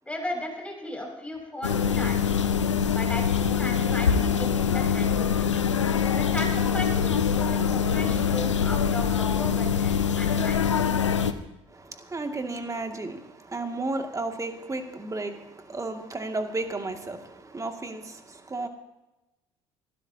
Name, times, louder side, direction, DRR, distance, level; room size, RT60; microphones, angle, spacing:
voice 1, 0.0-2.4 2.9-5.3 6.2-10.7, left 1 dB, 10° left, 6.0 m, -36 dB
sound 1, 1.6-11.3, left 7 dB, 90° left, 0.7 m, -24 dB
voice 2, 11.7-18.7, right 2 dB, 20° right, 2.2 m, -33 dB
25.0 x 12.5 x 2.8 m
hypercardioid pair, 55°, 15 cm